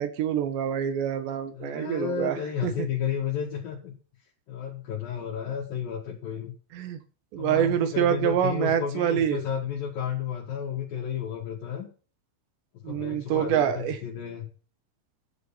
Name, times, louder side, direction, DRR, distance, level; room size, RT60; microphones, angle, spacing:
voice 1, 0.0-2.4 2.6-2.7 6.8-7.0 7.3-9.4 12.8-14.0, right 9 dB, 80° right, 10 dB, 3.7 m, -26 dB
voice 2, 1.5-3.9 4.5-6.5 7.4-11.9 12.7-14.5, left 8 dB, 60° left, -2 dB, 3.5 m, -32 dB
13.5 x 9.4 x 5.8 m, 0.38 s
omnidirectional pair, 5.1 m